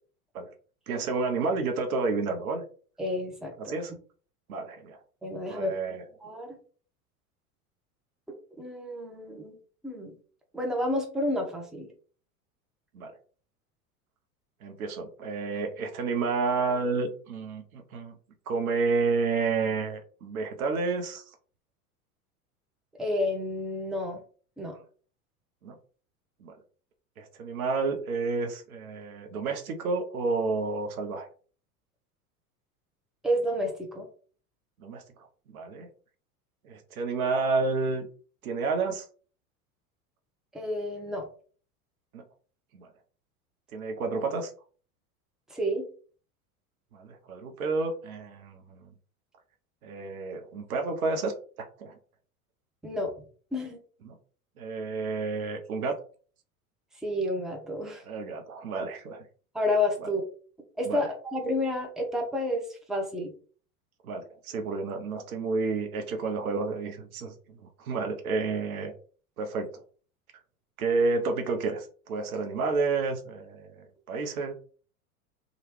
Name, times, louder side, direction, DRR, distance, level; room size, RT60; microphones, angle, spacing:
voice 1, 0.9-2.6 3.6-3.9 4.5-5.0 5.5-6.0 12.9-13.1 14.6-18.2 18.5-21.2 25.6-25.8 26.4-26.5 27.2-31.3 34.8-35.0 35.5-35.9 36.6-38.1 38.4-39.1 42.1-42.2 42.7-42.9 43.7-44.5 46.9-48.9 49.8-51.3 51.8-51.9 54.0-54.2 54.6-56.0 58.1-59.2 60.0-60.1 60.8-61.1 64.0-68.9 69.4-69.8 70.8-74.5, right 4 dB, 70° right, 5 dB, 0.8 m, -30 dB
voice 2, 3.0-3.7 5.2-5.7 6.2-6.6 8.6-9.6 9.8-10.1 10.5-11.9 23.0-24.2 24.6-24.8 33.2-34.1 40.5-41.3 45.5-45.8 52.8-53.1 53.5-53.8 57.0-58.0 59.5-60.2 60.8-63.3, left 1 dB, ahead, 1 dB, 0.7 m, -30 dB
2.9 x 2.4 x 3.1 m, 0.41 s
figure-of-eight pair, 85°, 45 cm